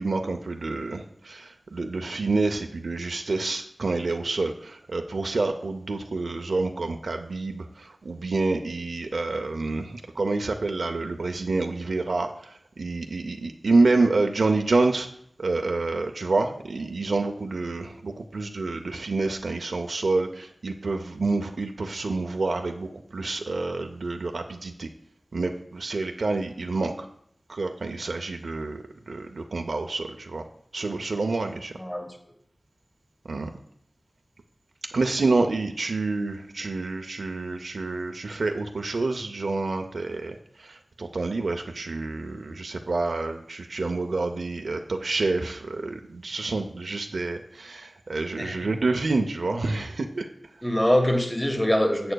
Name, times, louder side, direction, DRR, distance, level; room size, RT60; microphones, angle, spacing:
voice 1, 0.0-15.1 15.4-24.9 25.3-27.1 27.5-30.4 30.7-31.7 33.2-33.5 34.9-50.3, right 3 dB, 90° right, 5 dB, 0.6 m, -28 dB
voice 2, 31.8-32.1 48.4-48.6 50.6-52.1, equal, 10° left, 4 dB, 1.2 m, -23 dB
11.0 x 7.7 x 2.3 m, 0.69 s
wide cardioid pair, 65°, 0 cm